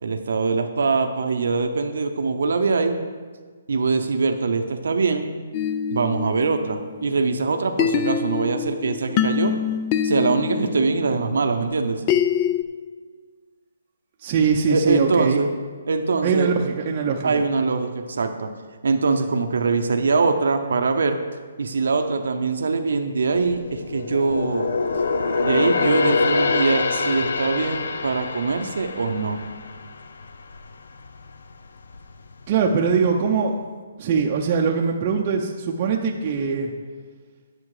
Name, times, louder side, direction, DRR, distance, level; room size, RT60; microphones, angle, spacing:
voice 1, 0.0-3.0 3.7-5.3 5.9-9.5 10.0-12.0 14.7-15.5 15.9-16.5 17.2-18.5 18.8-21.2 21.6-24.7 25.4-29.4, right 4 dB, 75° right, 5 dB, 0.7 m, -23 dB
sound 1, 5.5-7.3 7.8-12.6, left 8 dB, 25° left, 0.4 m, -25 dB
voice 2, 14.2-15.4 16.2-17.4 32.5-33.6 34.0-36.7, right 5 dB, 30° right, 0 dB, 0.7 m, -22 dB
sound 2, 23.2-30.7 31.1-31.3 31.8-32.6 32.9-33.0, left 4 dB, 80° left, 0.7 m, -25 dB
9.7 x 7.0 x 4.9 m, 1.5 s
hypercardioid pair, 160°, 0 cm